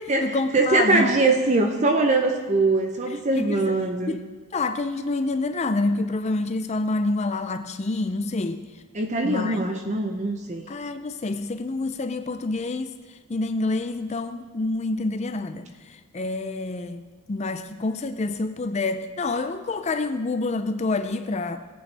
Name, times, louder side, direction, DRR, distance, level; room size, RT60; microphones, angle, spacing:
voice 1, 0.0-1.1 3.4-3.7 4.1-4.2 4.5-8.6 9.2-9.6 10.7-13.0 13.3-17.0 17.3-21.6, left 3 dB, 30° left, 10 dB, 0.4 m, -27 dB
voice 2, 0.5-4.2 8.9-10.6, right 2 dB, 30° right, 4 dB, 0.7 m, -22 dB
17.5 x 8.7 x 3.4 m, 1.4 s
head